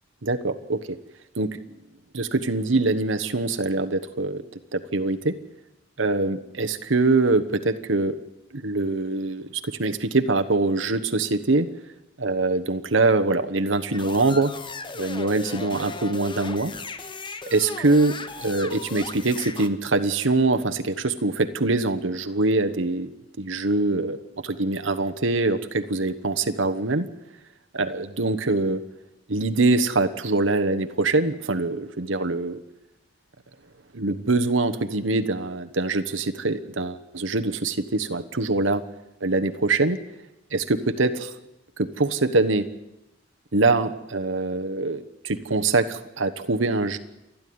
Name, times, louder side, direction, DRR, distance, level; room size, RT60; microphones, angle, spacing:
voice 1, 0.2-1.0 1.4-1.5 2.1-4.4 4.7-5.4 6.0-8.2 8.5-11.7 12.2-14.5 14.9-16.7 17.5-18.1 18.4-24.2 24.4-27.1 27.7-28.8 29.3-32.6 33.9-38.8 39.2-40.0 40.5-41.3 41.8-42.7 43.5-47.0, right 3 dB, 85° right, 7 dB, 1.2 m, -23 dB
sound 1, 13.9-19.7, left 4 dB, 25° left, 1.1 m, -37 dB
28.5 x 10.5 x 9.5 m, 0.94 s
head